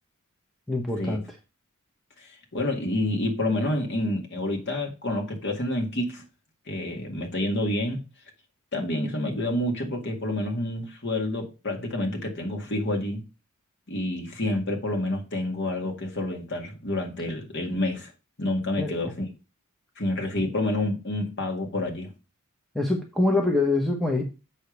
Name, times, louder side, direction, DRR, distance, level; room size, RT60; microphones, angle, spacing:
voice 1, 0.7-1.2 17.3-17.4 18.8-18.9 22.7-24.2, left 2 dB, ahead, 1.0 m, -24 dB
voice 2, 2.5-6.2 6.7-8.0 8.7-13.2 13.9-18.1 18.4-19.3 20.0-22.1, left 1 dB, 50° left, 2.0 m, -28 dB
7.0 x 5.1 x 5.2 m
head